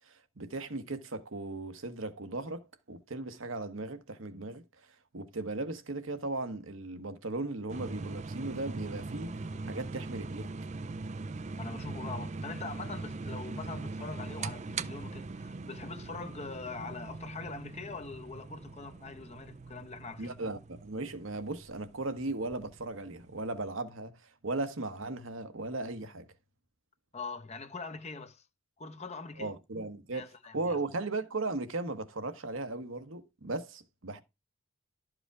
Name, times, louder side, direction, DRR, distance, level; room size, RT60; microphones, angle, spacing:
voice 1, 0.1-4.6 5.1-10.5 20.2-24.2 24.4-26.3 29.4-34.2, right 2 dB, 65° right, 1.1 m, -37 dB
sound 1, 7.7-23.7, right 3 dB, 35° right, 0.4 m, -41 dB
voice 2, 11.5-20.4 27.1-28.5 28.8-29.5 30.1-30.8, left 4 dB, 30° left, 0.8 m, -43 dB
12.5 x 5.0 x 4.7 m
head